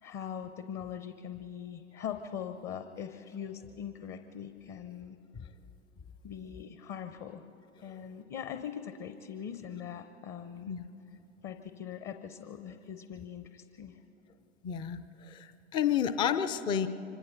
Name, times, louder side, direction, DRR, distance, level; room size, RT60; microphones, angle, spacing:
voice 1, 0.0-5.2 6.2-7.5 7.8-10.7 11.4-14.0, left 8 dB, 30° left, 8 dB, 0.8 m, -41 dB
voice 2, 14.6-16.9, left 8 dB, 15° left, 10 dB, 0.4 m, -31 dB
26.0 x 25.0 x 4.0 m, 2.9 s
figure-of-eight pair, 95°, 37 cm